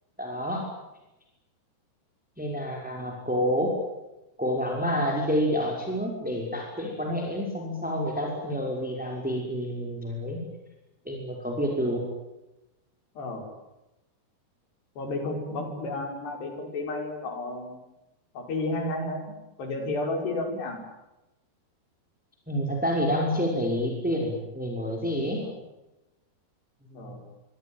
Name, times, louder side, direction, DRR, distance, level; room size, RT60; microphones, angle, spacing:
voice 1, 0.2-0.6 2.4-3.7 4.4-10.4 11.1-12.0 22.5-25.4 26.9-27.1, equal, ahead, 0 dB, 5.6 m, -28 dB
voice 2, 13.2-13.5 15.0-17.8 18.3-20.9 25.4-25.5 26.9-27.2, left 2 dB, 85° left, 4 dB, 7.7 m, -32 dB
26.0 x 24.0 x 9.2 m, 0.97 s
omnidirectional pair, 4.7 m